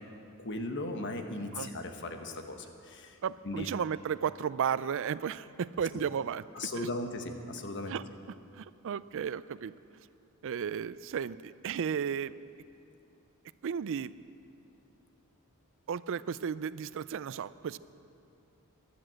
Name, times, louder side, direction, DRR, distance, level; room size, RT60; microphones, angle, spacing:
voice 1, 0.4-3.2 3.4-3.7 6.5-7.9, left 2 dB, 55° left, 5 dB, 1.2 m, -37 dB
voice 2, 3.2-6.4 6.7-6.9 7.9-8.0 8.5-9.7 10.4-12.3 13.6-14.1 15.9-17.8, right 7 dB, 60° right, 17 dB, 0.4 m, -34 dB
14.5 x 12.0 x 7.6 m, 2.6 s
head